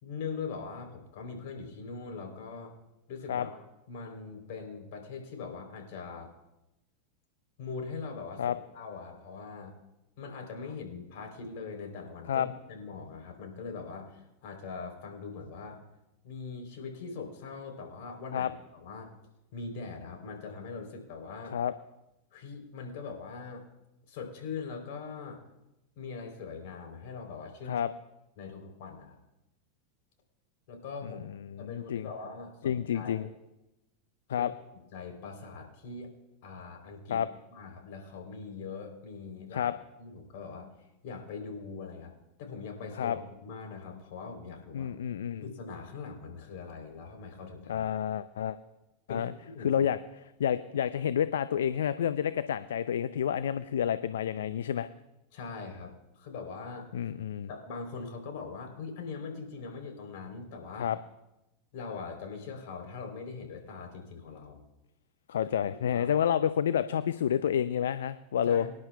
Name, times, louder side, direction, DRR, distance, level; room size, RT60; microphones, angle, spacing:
voice 1, 0.0-2.7 3.1-3.6 3.9-6.3 7.6-9.8 10.2-15.8 16.2-19.1 19.5-21.6 22.3-23.6 24.1-25.4 26.0-27.8 28.4-29.2 30.7-31.2 31.6-33.3 34.4-34.5 34.9-36.1 36.4-37.2 37.5-40.7 41.0-42.1 42.4-44.9 45.4-47.9 49.1-49.9 55.3-56.9 57.5-60.9 61.7-64.6 65.4-66.1 68.4-68.7, left 4 dB, 60° left, 2 dB, 3.4 m, -42 dB
voice 2, 31.5-32.0 32.6-33.3 34.3-34.5 37.1-37.3 39.5-39.7 43.0-43.2 44.7-45.4 47.7-48.6 49.1-49.3 49.6-54.9 56.9-57.5 60.8-61.0 65.3-68.6, left 9 dB, 75° left, 13 dB, 0.4 m, -29 dB
24.5 x 10.5 x 2.3 m, 0.93 s
hypercardioid pair, 95°, 0 cm